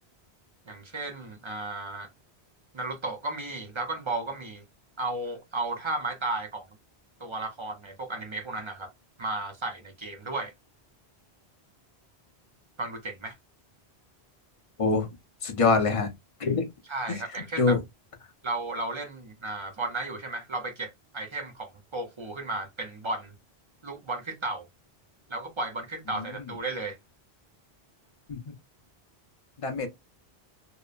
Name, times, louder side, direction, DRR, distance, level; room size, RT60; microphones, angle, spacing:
voice 1, 0.7-2.1 2.7-4.6 5.0-6.7 7.2-8.9 9.2-10.5 12.8-13.4 16.9-17.8 18.4-23.3 23.8-24.6 25.3-27.0, right 2 dB, 35° right, 0.5 m, -34 dB
voice 2, 15.4-16.1 16.4-16.7 17.1-17.2 17.6-17.8 26.1-26.5 28.3-28.4 29.6-29.9, left 4 dB, 40° left, 0.6 m, -25 dB
2.8 x 2.0 x 2.3 m
omnidirectional pair, 1.1 m